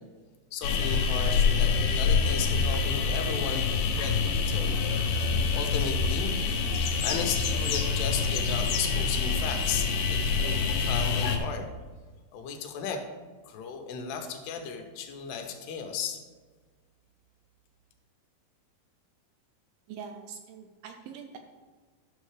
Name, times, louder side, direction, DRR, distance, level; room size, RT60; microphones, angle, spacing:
voice 1, 0.5-4.8 5.5-6.3 7.0-11.7 12.3-13.0 13.5-16.2, left 6 dB, 90° left, 4 dB, 3.0 m, -35 dB
sound 1, 0.6-11.4, left 5 dB, 75° left, 2.2 m, -26 dB
voice 2, 19.9-21.4, right 6 dB, 80° right, 5 dB, 2.2 m, -43 dB
11.0 x 6.6 x 3.2 m, 1.4 s
omnidirectional pair, 4.7 m